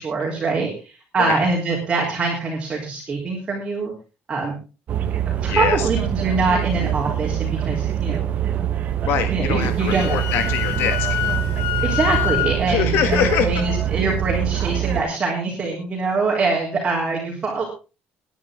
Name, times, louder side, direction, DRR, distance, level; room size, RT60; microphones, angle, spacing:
voice 1, 0.0-3.9 4.3-4.5 4.9-5.1 5.4-8.3 9.3-10.2 11.8-17.6, right 3 dB, 20° right, -3 dB, 3.5 m, -24 dB
sound 1, 4.9-15.0, right 10 dB, 40° right, 1.5 m, -24 dB
voice 2, 5.5-5.9 9.1-11.2 12.7-13.6, left 8 dB, 65° left, 8 dB, 1.5 m, -23 dB
Wind instrument woodwind instrument, 9.6-12.6, left 14 dB, 85° left, 2.0 m, -26 dB
20.0 x 10.5 x 3.7 m, 0.33 s
cardioid pair, 175°, 4 cm